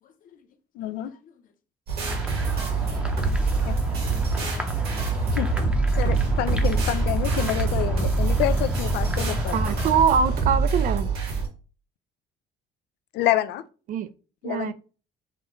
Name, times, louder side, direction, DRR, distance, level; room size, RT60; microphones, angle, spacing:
voice 1, 0.0-0.5 1.0-1.4 2.2-2.8 3.4-5.2, left 7 dB, 55° left, 0.9 m, -55 dB
voice 2, 0.8-1.1 3.7-3.8 5.3-5.5 6.0-9.6 13.1-13.6 14.4-14.7, left 13 dB, 80° left, 0.4 m, -27 dB
sound 1, 1.9-11.5, right 4 dB, 65° right, 2.1 m, -26 dB
sound 2, 2.0-10.0, equal, 5° right, 0.7 m, -29 dB
voice 3, 9.5-11.1 13.9-14.1 14.4-14.7, right 7 dB, 50° right, 0.4 m, -23 dB
5.7 x 2.3 x 3.1 m
cardioid pair, 110°, 17 cm